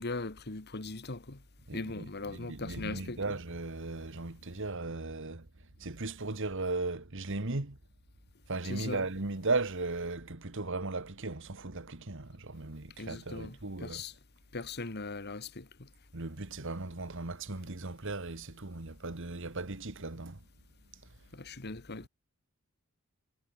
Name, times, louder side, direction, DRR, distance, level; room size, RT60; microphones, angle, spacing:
voice 1, 0.0-1.4 1.7-3.4 8.6-9.1 13.0-14.1 14.5-15.9 21.3-22.1, left 3 dB, 50° left, 1.7 m, -40 dB
voice 2, 1.7-5.5 5.8-7.8 8.5-14.0 16.1-20.4, right 3 dB, 65° right, 1.8 m, -37 dB
head